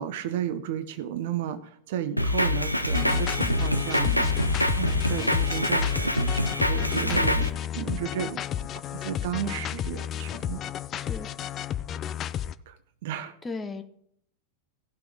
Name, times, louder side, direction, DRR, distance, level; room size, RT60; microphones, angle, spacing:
voice 1, 0.0-4.3 4.8-7.5 7.7-10.6 12.7-12.8 13.0-13.4, right 10 dB, 50° right, 13 dB, 0.7 m, -33 dB
Drum kit, 2.2-7.5, left 1 dB, 90° left, 0.5 m, -25 dB
sound 1, 2.9-12.5, left 10 dB, 30° left, 0.4 m, -33 dB
voice 2, 10.9-11.3 13.4-13.8, left 3 dB, 15° left, 7 dB, 0.9 m, -36 dB
17.5 x 5.9 x 3.6 m, 0.68 s
figure-of-eight pair, 90°, 0 cm